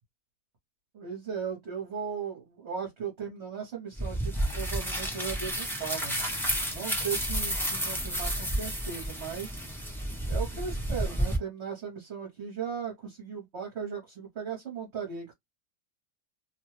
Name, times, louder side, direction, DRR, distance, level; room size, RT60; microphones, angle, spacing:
voice 1, 0.9-6.2 6.7-9.6 10.3-15.3, right 7 dB, 45° right, 1.1 m, -37 dB
sound 1, 4.0-11.4, equal, 5° left, 0.3 m, -31 dB
2.8 x 2.2 x 3.1 m
omnidirectional pair, 1.8 m